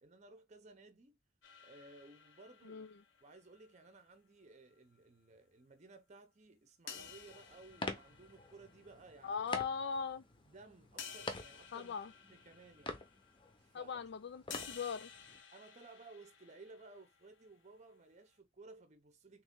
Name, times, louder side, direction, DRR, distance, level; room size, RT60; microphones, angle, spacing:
voice 1, 0.0-1.2 1.6-2.9 3.2-9.4 10.5-11.9 12.3-13.1 13.6-14.1 15.5-19.4, right 3 dB, 35° right, 0.7 m, -58 dB
sound 1, 1.4-4.1 6.9-9.3 10.0-10.1 11.0-13.8 14.5-17.5, left 7 dB, 80° left, 0.9 m, -54 dB
sound 2, 6.9-15.4, left 2 dB, 25° left, 0.8 m, -48 dB
voice 2, 9.2-10.2 11.7-12.1 13.7-15.1, left 6 dB, 60° left, 0.4 m, -40 dB
3.6 x 3.1 x 3.7 m
head